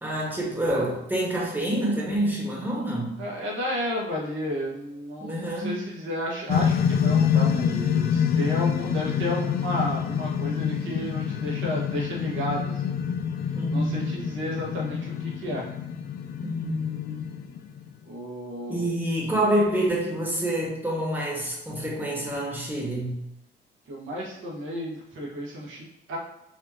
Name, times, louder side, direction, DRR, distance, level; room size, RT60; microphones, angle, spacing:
voice 1, 0.0-3.2 5.2-5.7 13.5-14.0 16.4-17.2 18.7-23.2, right 1 dB, 10° right, -3 dB, 1.4 m, -27 dB
voice 2, 3.2-12.9 13.7-15.6 18.0-18.9 23.9-26.2, equal, 75° right, -3 dB, 1.4 m, -32 dB
sound 1, 6.5-17.9, left 8 dB, 50° left, 0.4 m, -26 dB
4.9 x 2.9 x 2.8 m, 0.85 s
cardioid pair, 90°, 20 cm